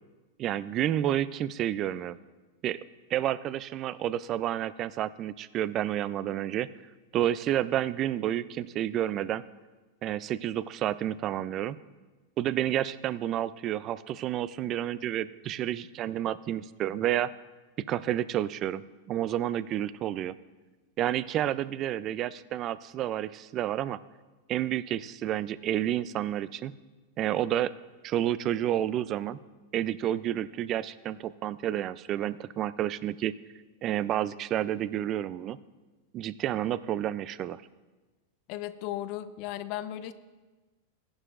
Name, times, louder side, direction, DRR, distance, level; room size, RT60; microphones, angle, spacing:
voice 1, 0.4-2.2 2.6-2.8 3.1-6.7 7.1-9.4 10.0-11.8 12.4-17.3 17.9-20.3 21.0-24.0 24.5-26.7 27.2-27.7 28.0-29.4 29.7-33.3 33.8-35.6 36.1-37.6, right 12 dB, 35° right, 16 dB, 0.4 m, -30 dB
voice 2, 38.5-40.1, left 13 dB, 50° left, 13 dB, 0.6 m, -36 dB
15.5 x 11.0 x 2.5 m, 1.2 s
supercardioid pair, 130°, 0 cm